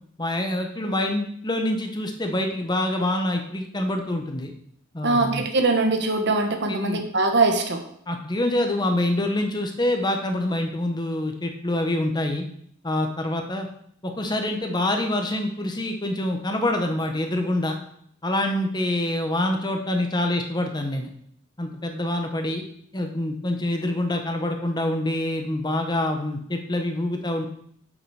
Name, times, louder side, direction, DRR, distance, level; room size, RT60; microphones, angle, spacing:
voice 1, 0.2-4.5 4.9-5.4 6.7-7.0 8.1-12.4 12.8-13.7 14.0-17.8 18.2-21.1 21.6-22.6 22.9-27.5, left 1 dB, 20° left, 4 dB, 1.1 m, -26 dB
voice 2, 5.0-7.8, right 3 dB, 55° right, 5 dB, 1.4 m, -22 dB
7.8 x 7.8 x 4.9 m, 0.66 s
head